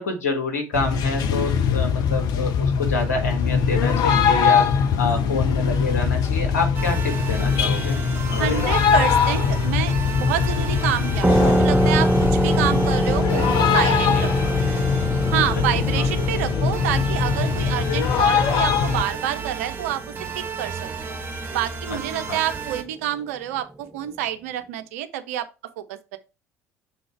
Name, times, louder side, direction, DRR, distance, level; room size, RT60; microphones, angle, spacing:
voice 1, 0.0-8.0 8.3-8.7 14.1-14.3 16.0-16.1 22.3-22.4, left 3 dB, 80° left, 1.5 m, -27 dB
sound 1, 0.7-19.0, left 6 dB, 50° left, 0.8 m, -21 dB
sound 2, 6.7-22.8, right 5 dB, 25° right, 2.0 m, -34 dB
voice 2, 8.4-14.6 15.3-20.0 20.4-20.9 21.5-25.5 25.8-26.2, right 11 dB, 70° right, 0.6 m, -28 dB
sound 3, 11.2-20.4, right 1 dB, 5° right, 0.5 m, -25 dB
6.4 x 3.8 x 4.6 m
figure-of-eight pair, 60°, 8 cm